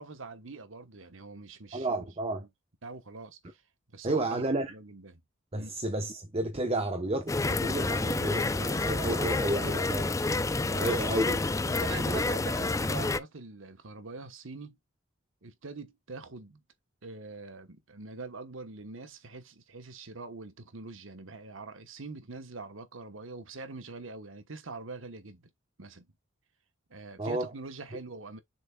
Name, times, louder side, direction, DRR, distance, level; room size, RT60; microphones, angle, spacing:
voice 1, 0.0-2.0 2.4-2.5 2.8-3.6 3.9-5.2 5.6-5.7 10.7-11.1 11.6-14.8 15.4-16.6 17.0-25.5 25.8-26.1 26.9-28.4, right 3 dB, 75° right, 1.2 m, -43 dB
voice 2, 1.7-2.5 4.0-4.7 5.5-10.1 10.8-11.4 12.0-12.2 27.2-27.5, right 1 dB, 30° right, 0.9 m, -31 dB
sound 1, 7.3-13.2, left 3 dB, 15° left, 0.4 m, -29 dB
7.1 x 5.7 x 2.3 m
head